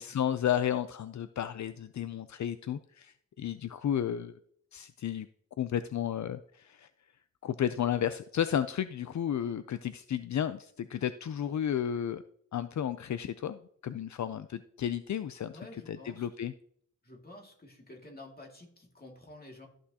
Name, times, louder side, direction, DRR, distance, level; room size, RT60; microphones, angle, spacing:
voice 1, 0.0-4.3 4.7-5.3 5.6-6.9 7.4-12.2 12.5-15.6 15.9-16.5, left 9 dB, 75° left, 12 dB, 0.4 m, -33 dB
voice 2, 15.5-16.3 17.0-19.7, left 1 dB, 30° left, 1 dB, 2.2 m, -50 dB
13.5 x 6.2 x 2.8 m, 0.63 s
wide cardioid pair, 100°, 29 cm